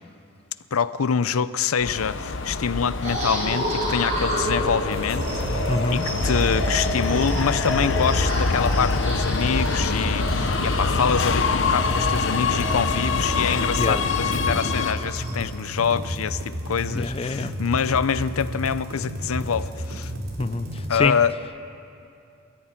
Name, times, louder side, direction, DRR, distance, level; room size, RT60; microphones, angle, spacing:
voice 1, 0.7-20.1 20.9-21.3, left 6 dB, 90° left, 15 dB, 0.6 m, -25 dB
Subway metro underground, 1.8-14.9, left 4 dB, 60° left, 0.8 m, -25 dB
sound 1, 3.0-15.3, equal, 35° right, 5.9 m, -31 dB
sound 2, 4.9-20.9, equal, 75° right, 3.9 m, -32 dB
voice 2, 5.7-6.1 13.8-14.0 16.9-17.5 20.4-21.2, left 3 dB, 25° left, 12 dB, 0.4 m, -25 dB
21.5 x 14.0 x 8.9 m, 2.7 s
head